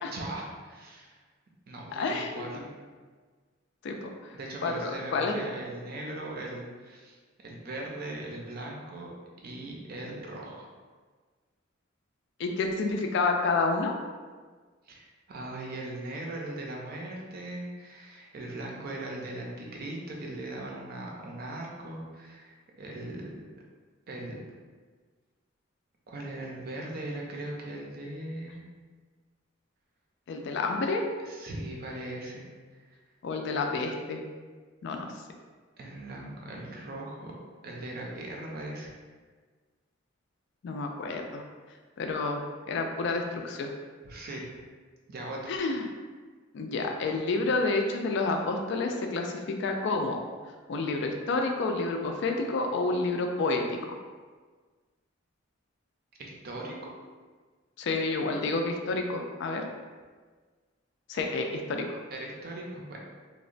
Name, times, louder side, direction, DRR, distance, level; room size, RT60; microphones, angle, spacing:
voice 1, 0.1-1.1 1.7-2.7 4.3-9.1 9.4-10.7 14.9-23.4 24.1-24.4 26.1-28.6 31.2-32.4 32.9-33.0 35.8-37.3 37.6-38.9 44.0-44.5 45.1-45.5 56.2-56.8 62.1-63.0, right 1 dB, 50° right, -1 dB, 0.5 m, -39 dB
voice 2, 1.9-2.6 3.8-4.3 4.6-5.3 12.4-13.9 30.3-31.0 33.2-34.2 34.8-35.1 40.6-41.4 42.0-43.7 45.5-45.8 46.5-50.2 50.7-53.8 57.8-59.6 61.1-62.0, left 3 dB, 60° left, 3 dB, 0.3 m, -29 dB
2.8 x 2.1 x 2.5 m, 1.5 s
head